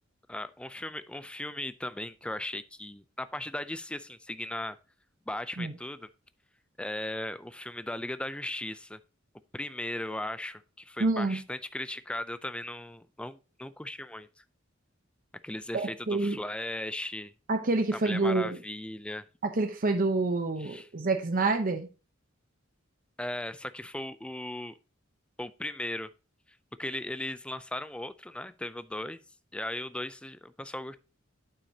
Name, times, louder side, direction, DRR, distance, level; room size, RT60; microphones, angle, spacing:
voice 1, 0.3-4.8 5.3-6.1 6.8-9.0 9.5-14.3 15.4-17.3 17.9-19.3 20.6-20.9 23.2-24.7 25.4-26.1 26.5-29.2 29.5-31.0, left 1 dB, 5° left, 0.4 m, -37 dB
voice 2, 11.0-11.4 15.7-16.4 17.5-18.6 19.4-21.9, right 3 dB, 45° right, 0.8 m, -27 dB
8.8 x 7.0 x 2.8 m
head